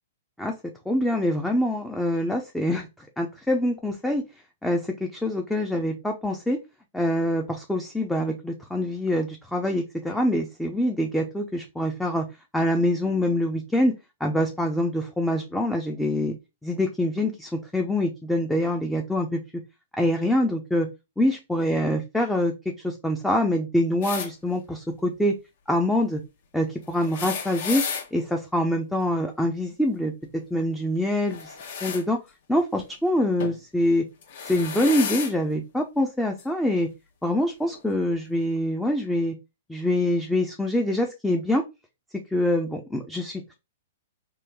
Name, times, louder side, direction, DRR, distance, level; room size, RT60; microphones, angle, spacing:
voice 1, 0.9-4.2 4.6-6.6 6.9-12.3 12.5-14.0 14.2-16.4 16.6-19.4 19.9-20.9 21.2-22.5 22.8-25.3 25.7-26.2 26.5-27.8 28.1-30.1 30.5-31.5 31.8-32.2 32.5-34.0 34.4-36.9 37.2-39.3 39.7-41.6 42.3-43.6, left 1 dB, 5° left, 2 dB, 0.5 m, -25 dB
sound 1, 24.0-24.3 26.9-28.1 31.3-32.0 33.4-33.6 34.2-35.3 36.4-36.5 37.7-37.8, left 6 dB, 60° left, 0.9 m, -32 dB
3.0 x 2.2 x 3.4 m, 0.25 s
hypercardioid pair, 125°, 0 cm